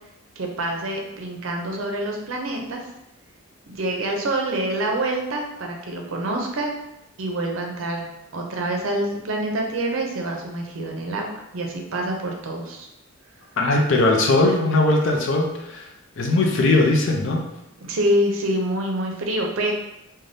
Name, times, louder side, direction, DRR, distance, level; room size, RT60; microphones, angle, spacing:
voice 1, 0.4-2.9 3.7-6.7 7.2-8.1 8.3-12.9 17.8-19.7, right 1 dB, 65° right, 1 dB, 0.5 m, -26 dB
voice 2, 13.6-15.9 16.2-17.4, left 2 dB, 60° left, 0 dB, 0.5 m, -19 dB
3.3 x 2.2 x 2.6 m, 0.87 s
head